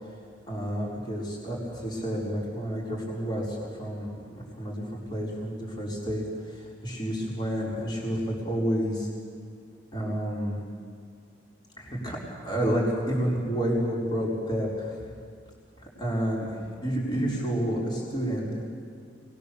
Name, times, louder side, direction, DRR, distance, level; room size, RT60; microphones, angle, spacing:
voice 1, 0.5-4.1 4.3-9.1 9.9-10.6 11.8-15.0 16.0-16.5 16.8-18.6, equal, 25° left, -4 dB, 4.6 m, -30 dB
28.0 x 20.5 x 7.0 m, 2.1 s
head